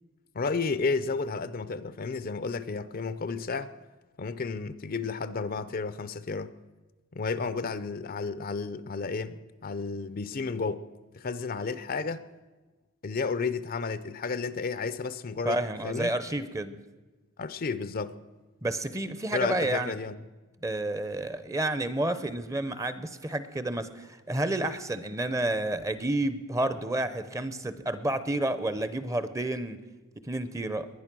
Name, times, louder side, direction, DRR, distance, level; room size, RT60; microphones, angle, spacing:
voice 1, 0.3-3.7 4.2-6.6 7.1-10.9 11.1-12.2 13.0-16.1 17.4-18.2 19.3-20.1, left 4 dB, 40° left, 0.5 m, -32 dB
voice 2, 15.4-16.8 18.6-19.9 20.6-29.8 30.2-30.9, right 1 dB, 15° right, 0.7 m, -30 dB
20.0 x 11.0 x 6.1 m
head